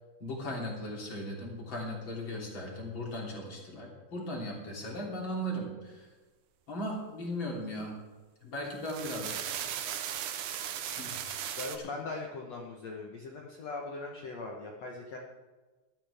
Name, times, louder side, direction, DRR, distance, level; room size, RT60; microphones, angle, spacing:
voice 1, 0.2-6.1 6.7-8.0 8.4-9.9 11.0-11.9, equal, 30° left, -2 dB, 3.4 m, -38 dB
sound 1, 8.7-11.8, right 9 dB, 85° right, 1.8 m, -37 dB
voice 2, 11.6-15.2, left 3 dB, 70° left, 0 dB, 1.6 m, -40 dB
18.0 x 13.0 x 3.6 m, 1.3 s
omnidirectional pair, 5.0 m